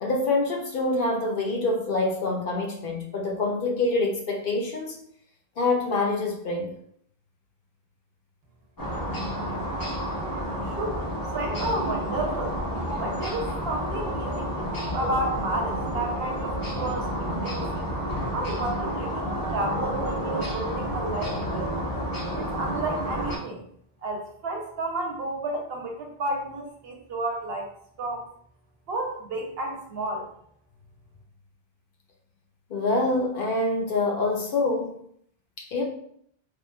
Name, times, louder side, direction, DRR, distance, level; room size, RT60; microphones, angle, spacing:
voice 1, 0.0-5.0 5.6-6.8 32.7-35.0 35.6-35.8, left 2 dB, 65° left, 0.7 m, -26 dB
sound 1, 8.8-23.4, equal, 30° left, 0.4 m, -30 dB
voice 2, 10.7-11.0 11.3-12.6 13.0-17.9 18.3-21.9 22.3-23.6 24.0-27.7 28.0-28.2 28.9-30.3, right 2 dB, 75° right, 0.9 m, -32 dB
2.9 x 2.4 x 2.2 m
omnidirectional pair, 1.1 m